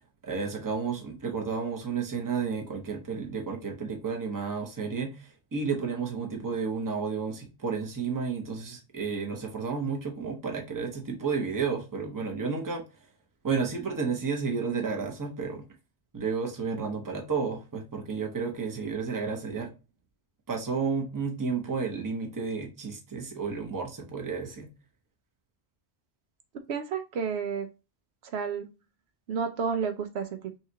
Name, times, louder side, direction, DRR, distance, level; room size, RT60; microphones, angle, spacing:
voice 1, 0.2-12.8 13.4-15.6 16.1-19.7 20.5-24.7, right 5 dB, 20° right, 0.8 m, -32 dB
voice 2, 26.7-27.7 28.2-28.7 29.3-30.6, right 6 dB, 70° right, 0.8 m, -31 dB
5.7 x 2.4 x 2.7 m
omnidirectional pair, 1.1 m